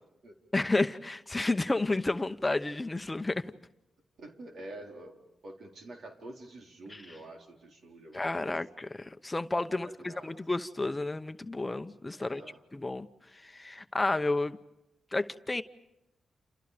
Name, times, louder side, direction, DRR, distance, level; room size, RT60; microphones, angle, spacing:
voice 1, 0.5-3.5 6.9-7.0 8.1-12.4 12.7-14.6 15.1-15.6, left 2 dB, 25° left, 0.9 m, -31 dB
voice 2, 4.2-8.3 9.7-10.4 12.1-12.6, right 1 dB, 70° right, 4.2 m, -48 dB
30.0 x 29.0 x 5.1 m
cardioid pair, 55°, 0 cm